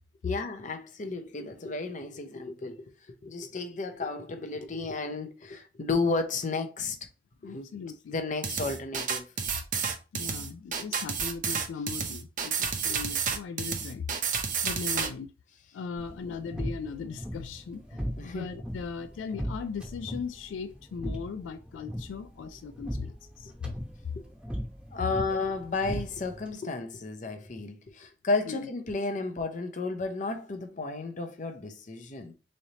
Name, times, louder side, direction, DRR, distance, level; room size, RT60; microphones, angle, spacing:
voice 1, 0.2-7.0 7.4-7.7 8.1-9.2 16.2-16.4 18.2-18.5 24.2-24.3 24.9-32.3, left 3 dB, 40° left, 0.6 m, -33 dB
voice 2, 7.4-8.2 10.1-14.1 14.6-15.3 15.7-23.7 25.3-25.5 28.4-28.7, left 5 dB, 85° left, 0.3 m, -38 dB
sound 1, 8.4-15.1, right 6 dB, 45° right, 0.6 m, -30 dB
sound 2, 16.0-26.5, equal, 5° right, 0.9 m, -39 dB
4.0 x 3.2 x 2.7 m
head